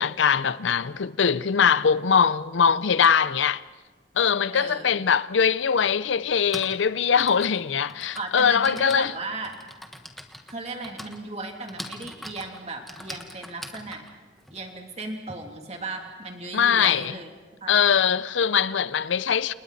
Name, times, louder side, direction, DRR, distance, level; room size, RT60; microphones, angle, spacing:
voice 1, 0.0-3.6 4.2-9.1 16.5-17.1 17.7-19.5, left 7 dB, 90° left, 0.6 m, -22 dB
voice 2, 4.5-5.1 8.1-9.6 10.5-14.0 14.5-17.3 17.6-17.7, right 2 dB, 35° right, 2.8 m, -36 dB
Typing, 5.2-5.3 6.2-15.3, equal, ahead, 1.5 m, -43 dB
29.5 x 28.5 x 4.1 m
head